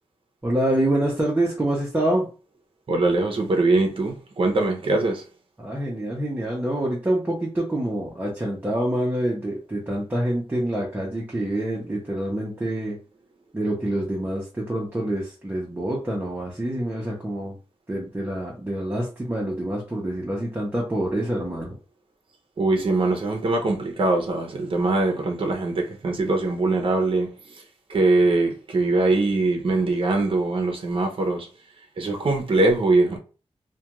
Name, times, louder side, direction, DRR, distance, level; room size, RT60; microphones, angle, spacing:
voice 1, 0.4-2.3 5.6-13.0 13.5-17.6 17.9-21.7, right 1 dB, 15° right, 0.7 m, -26 dB
voice 2, 2.9-5.2 22.6-27.3 27.9-31.5 32.0-33.2, right 2 dB, 50° right, 0.7 m, -22 dB
2.4 x 2.2 x 2.9 m
wide cardioid pair, 115°, 11 cm